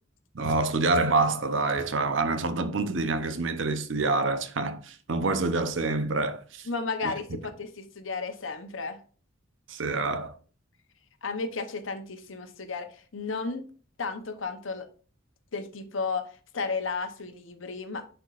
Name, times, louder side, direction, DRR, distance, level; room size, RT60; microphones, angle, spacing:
voice 1, 0.3-6.7 9.7-10.3, right 3 dB, 65° right, 0.7 m, -27 dB
voice 2, 6.7-9.0 11.2-13.6 14.0-14.9 15.5-18.1, left 4 dB, 75° left, 0.9 m, -33 dB
10.5 x 4.4 x 2.5 m
head